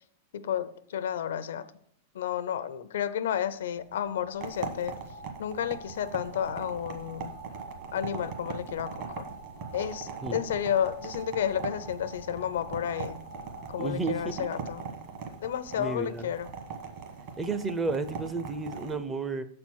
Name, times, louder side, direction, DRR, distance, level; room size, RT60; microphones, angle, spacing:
voice 1, 0.3-1.6 2.1-5.0 5.4-7.3 7.9-9.3 9.7-13.2 13.7-14.8 15.4-16.5, left 9 dB, 85° left, 13 dB, 0.5 m, -31 dB
sound 1, 3.5-14.6, right 3 dB, 90° right, 0.8 m, -46 dB
sound 2, 4.4-19.0, right 5 dB, 45° right, 1.2 m, -41 dB
voice 2, 13.8-14.5 15.8-16.3 17.4-19.5, right 3 dB, 15° right, 11 dB, 0.4 m, -32 dB
6.7 x 4.3 x 6.3 m, 0.64 s
supercardioid pair, 160°, 0 cm